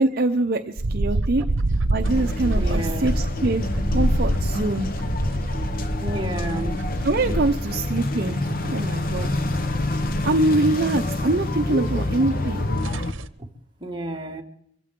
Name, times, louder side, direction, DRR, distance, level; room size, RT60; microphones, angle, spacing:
voice 1, 0.0-1.4 1.9-4.9 7.0-8.4 8.7-9.3 10.2-12.6, right 2 dB, 50° right, 7 dB, 0.7 m, -24 dB
sound 1, 0.8-7.9 8.3-9.1 9.4-9.6 9.9-10.0 12.1-12.2 12.5-12.6 12.8-13.3, right 2 dB, 90° right, 0.8 m, -28 dB
sound 2, 2.0-13.1, left 1 dB, 50° left, 1.0 m, -26 dB
voice 2, 2.5-3.2 6.0-6.8 13.8-14.4, right 1 dB, 25° right, 1 dB, 1.8 m, -31 dB
24.0 x 15.0 x 3.7 m, 0.72 s
head